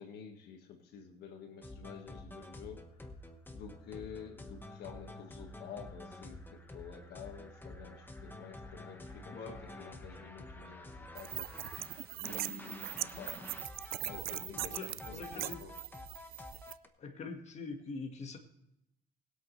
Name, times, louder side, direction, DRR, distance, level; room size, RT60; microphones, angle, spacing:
voice 1, 0.0-3.0 3.5-11.5 12.2-13.5 14.0-15.7, left 7 dB, 75° left, 5 dB, 1.6 m, -50 dB
sound 1, 1.6-16.9, left 2 dB, 10° left, 1.3 m, -49 dB
voice 2, 9.3-9.6 14.7-15.6 17.0-18.4, left 4 dB, 40° left, 4 dB, 1.7 m, -43 dB
sound 2, 11.2-16.7, right 15 dB, 65° right, 0.4 m, -41 dB
20.5 x 8.3 x 3.2 m, 0.82 s
cardioid pair, 110°, 17 cm